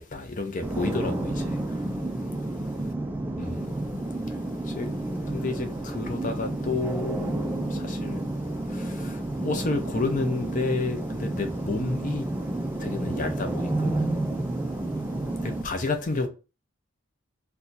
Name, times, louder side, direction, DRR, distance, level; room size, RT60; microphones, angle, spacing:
voice 1, 0.0-2.2 3.4-3.7 4.2-8.2 8.5-12.3 12.8-14.2 14.6-16.3, left 3 dB, 40° left, 0.6 m, -32 dB
sound 1, 0.6-15.6, right 1 dB, 10° right, 0.3 m, -30 dB
2.7 x 2.3 x 4.0 m
head